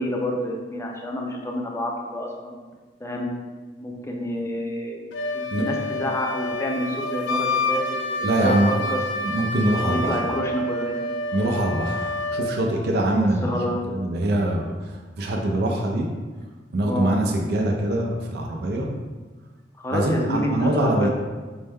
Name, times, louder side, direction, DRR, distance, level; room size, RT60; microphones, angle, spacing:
voice 1, 0.0-2.6 3.0-3.3 3.8-5.1 5.3-9.0 9.8-11.1 13.4-13.8 16.8-17.2 19.8-21.1, left 1 dB, 15° left, 0 dB, 0.4 m, -28 dB
Wind instrument woodwind instrument, 5.1-12.5, left 2 dB, 90° left, 0.4 m, -28 dB
voice 2, 8.2-8.7 9.2-10.2 11.3-13.5 13.9-16.1 16.7-18.9 19.9-21.1, right 1 dB, 65° right, 0 dB, 0.4 m, -23 dB
4.3 x 2.1 x 3.4 m, 1.3 s
head